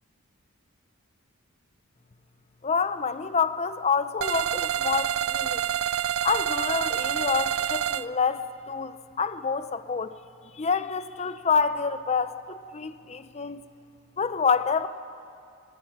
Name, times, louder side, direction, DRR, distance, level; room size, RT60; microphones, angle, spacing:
voice 1, 2.6-5.6 6.2-10.1 10.5-13.6 14.2-14.9, left 5 dB, 30° left, 12 dB, 0.5 m, -27 dB
sound 1, 4.2-8.0, right 10 dB, 75° right, 0.4 m, -27 dB
24.5 x 18.5 x 6.0 m, 2.5 s
head